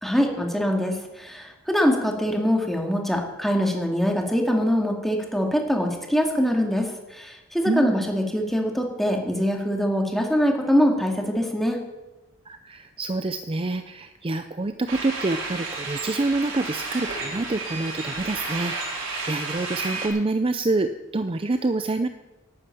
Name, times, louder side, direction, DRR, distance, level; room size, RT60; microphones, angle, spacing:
voice 1, 0.0-11.8, equal, ahead, 2 dB, 2.1 m, -23 dB
voice 2, 7.6-8.0 12.5-22.1, right 2 dB, 25° right, 9 dB, 0.5 m, -27 dB
sound 1, 14.9-20.1, right 3 dB, 65° right, 4.1 m, -32 dB
11.5 x 9.9 x 8.9 m, 1.1 s
head